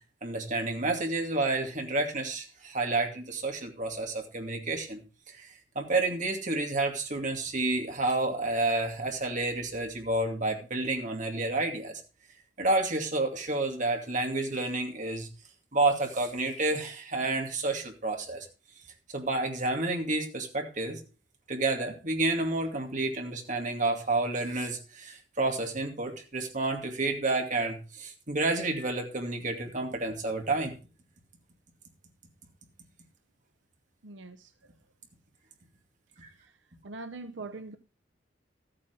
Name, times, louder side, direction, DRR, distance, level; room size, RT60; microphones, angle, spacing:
voice 1, 0.2-5.0 5.3-5.5 5.8-12.0 12.6-15.3 15.7-18.5 19.1-21.0 21.5-30.7 36.2-36.3, right 2 dB, 45° right, 2.5 m, -30 dB
voice 2, 34.0-34.5 36.8-37.8, right 3 dB, 85° right, 0.8 m, -41 dB
13.5 x 8.9 x 4.6 m
head